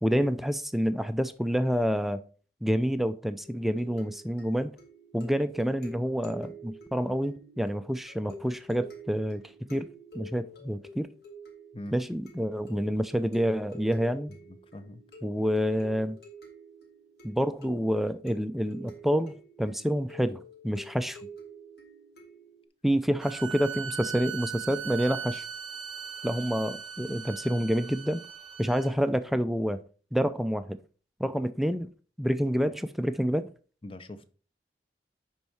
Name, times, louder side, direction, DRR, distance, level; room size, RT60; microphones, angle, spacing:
voice 1, 0.0-2.2 2.6-4.8 5.1-9.4 9.7-9.9 10.1-11.1 11.9-14.3 15.2-16.2 17.2-21.2 22.8-25.5 26.2-28.2 28.6-29.8 30.1-30.8 31.2-31.9 32.2-33.5, equal, ahead, 0.4 m, -28 dB
sound 1, 3.4-22.6, equal, 65° left, 3.3 m, -49 dB
voice 2, 14.4-15.0 33.8-34.3, left 1 dB, 30° left, 0.7 m, -42 dB
sound 2, 23.2-28.9, right 7 dB, 25° right, 0.9 m, -39 dB
11.0 x 4.4 x 4.7 m
head